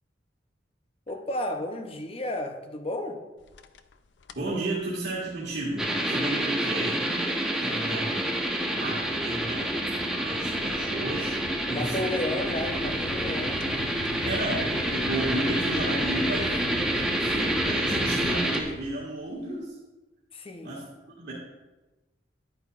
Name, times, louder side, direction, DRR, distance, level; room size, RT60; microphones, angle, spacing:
voice 1, 1.1-3.2 7.5-8.0 11.7-13.6 16.9-17.0 20.3-20.8, left 1 dB, 30° left, 5 dB, 0.7 m, -33 dB
sound 1, 3.4-3.9 4.2-4.6 5.0-19.3, left 4 dB, 70° left, 0.4 m, -41 dB
voice 2, 4.4-7.3 7.6-8.3 8.7-11.4 11.7-12.1 14.2-16.6 17.2-19.8 20.6-20.8 21.2-21.3, right 1 dB, 65° right, -8 dB, 1.7 m, -33 dB
sound 2, 5.8-18.6, right 1 dB, 5° right, 0.8 m, -28 dB
10.0 x 8.3 x 2.4 m, 1.1 s
head